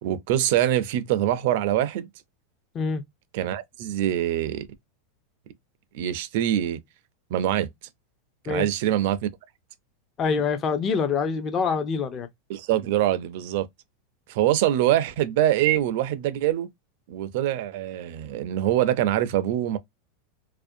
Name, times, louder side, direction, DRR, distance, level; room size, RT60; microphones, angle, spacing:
voice 1, 0.0-2.1 3.3-4.7 5.9-6.8 7.3-7.7 8.5-9.3 12.5-13.7 14.3-16.7 17.1-19.8, right 12 dB, 55° right, 0.4 m, -24 dB
voice 2, 10.2-12.3, left 5 dB, 25° left, 0.4 m, -25 dB
2.5 x 2.1 x 2.5 m
supercardioid pair, 165°, 0 cm